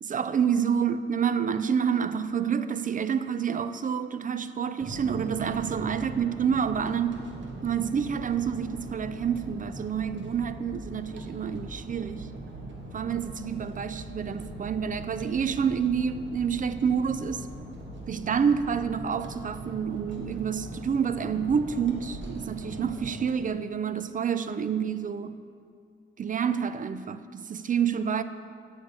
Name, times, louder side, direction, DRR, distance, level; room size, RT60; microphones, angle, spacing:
voice 1, 0.0-7.2 7.6-12.3 12.9-17.5 18.1-25.4 26.2-28.2, right 7 dB, 40° right, 12 dB, 0.4 m, -28 dB
sound 1, 4.8-23.3, right 1 dB, 65° right, 1.2 m, -41 dB
14.5 x 6.4 x 3.4 m, 2.2 s
cardioid pair, 100°, 21 cm